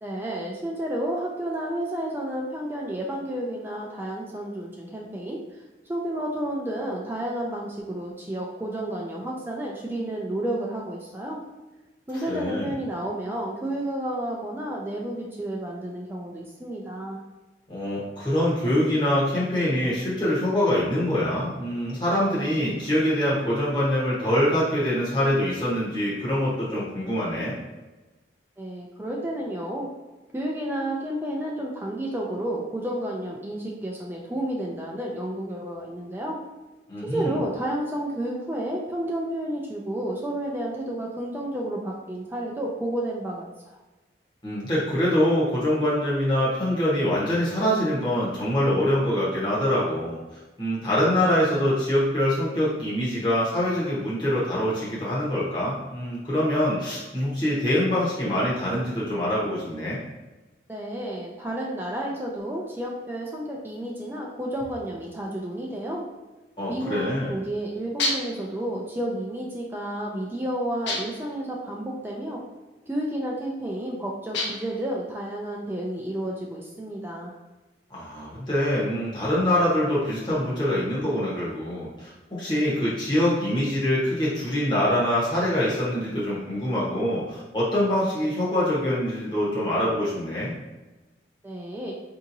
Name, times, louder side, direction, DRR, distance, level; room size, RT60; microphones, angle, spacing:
voice 1, 0.0-5.4 5.9-11.4 12.1-17.2 28.6-29.9 30.3-36.4 37.0-43.8 60.7-66.1 66.7-72.4 72.9-77.3 91.4-91.9, right 1 dB, 10° right, -2 dB, 0.4 m, -31 dB
voice 2, 12.1-12.7 17.7-27.5 36.9-37.3 44.4-60.0 66.6-67.3 77.9-90.6, left 1 dB, 25° left, -7 dB, 0.9 m, -24 dB
sound 1, 68.0-68.4 70.9-71.3 74.3-74.8, left 2 dB, 75° left, 0.7 m, -28 dB
4.8 x 2.8 x 2.6 m, 1.1 s
head